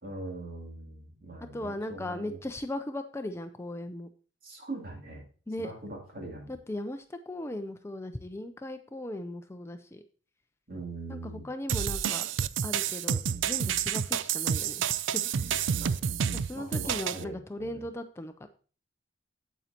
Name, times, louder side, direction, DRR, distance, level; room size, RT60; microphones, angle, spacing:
voice 1, 0.0-2.4 4.4-5.2 5.6-6.6 10.7-11.5 15.8-16.0 16.4-17.8, right 2 dB, 50° right, -1 dB, 2.8 m, -42 dB
voice 2, 1.5-4.1 5.5-5.7 6.5-10.0 11.1-12.3 12.6-14.8 15.1-15.6 16.3-18.5, left 1 dB, 15° left, 8 dB, 0.4 m, -38 dB
sound 1, 11.7-17.2, right 8 dB, 90° right, 0.4 m, -29 dB
9.1 x 8.1 x 2.9 m, 0.40 s
head